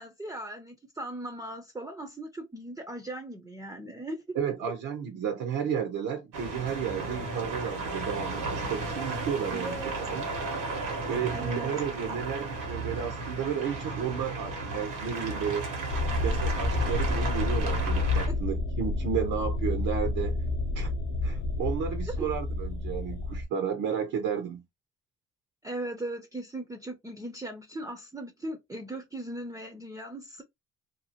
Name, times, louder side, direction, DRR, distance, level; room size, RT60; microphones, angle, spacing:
voice 1, 0.0-4.4 9.5-10.0 11.3-11.7 18.3-18.4 22.2-22.3 25.6-30.4, right 1 dB, 10° right, 0.4 m, -38 dB
voice 2, 4.4-9.7 10.1-10.3 11.1-15.7 16.2-20.4 20.7-20.9 21.2-24.6, right 7 dB, 70° right, 0.7 m, -32 dB
sound 1, 6.3-18.3, right 2 dB, 85° right, 1.1 m, -34 dB
sound 2, 15.9-23.4, left 2 dB, 70° left, 0.6 m, -29 dB
2.7 x 2.4 x 2.8 m
cardioid pair, 120°, 31 cm